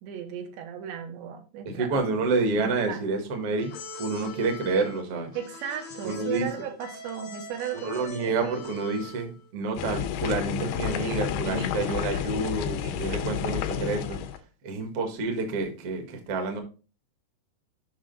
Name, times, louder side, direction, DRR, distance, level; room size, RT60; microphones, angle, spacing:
voice 1, 0.0-2.0 2.5-3.0 5.3-8.6 11.4-12.2 12.8-13.5, right 9 dB, 85° right, 3.4 m, -37 dB
voice 2, 1.6-3.7 4.0-5.3 6.0-6.5 7.7-14.2 14.6-16.6, right 3 dB, 55° right, 1.7 m, -28 dB
sound 1, 3.6-9.5, left 2 dB, 65° left, 1.3 m, -43 dB
sound 2, 9.8-14.4, left 9 dB, 85° left, 2.0 m, -30 dB
7.5 x 5.8 x 3.9 m
omnidirectional pair, 4.9 m